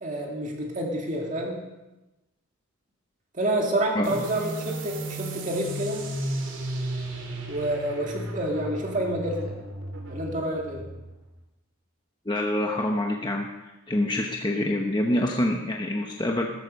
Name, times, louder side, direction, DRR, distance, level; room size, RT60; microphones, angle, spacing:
voice 1, 0.0-1.6 3.3-6.0 7.5-9.6 10.1-10.8, right 1 dB, 35° right, 0 dB, 2.2 m, -28 dB
sound 1, 4.0-11.3, right 1 dB, 60° right, 3.1 m, -35 dB
voice 2, 12.3-13.5 13.9-16.5, left 1 dB, 20° left, 1 dB, 0.9 m, -26 dB
14.5 x 13.5 x 5.3 m, 1.0 s
head